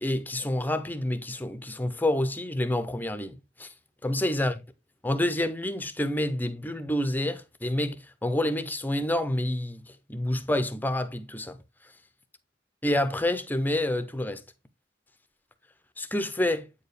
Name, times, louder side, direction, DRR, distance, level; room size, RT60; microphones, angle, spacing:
voice 1, 0.0-3.7 4.0-4.5 5.0-8.0 8.2-9.8 10.1-11.6 12.8-14.4 16.0-16.7, left 1 dB, 10° left, 0.7 m, -28 dB
8.7 x 4.6 x 3.3 m
head